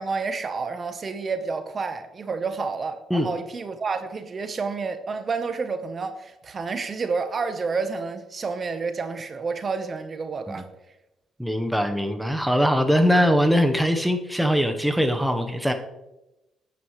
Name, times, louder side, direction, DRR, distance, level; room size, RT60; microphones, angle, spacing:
voice 1, 0.0-10.6, right 4 dB, 40° right, 9 dB, 0.9 m, -29 dB
voice 2, 11.4-15.7, equal, ahead, 6 dB, 0.9 m, -21 dB
9.6 x 9.3 x 3.1 m, 0.96 s
cardioid pair, 90°, 0 cm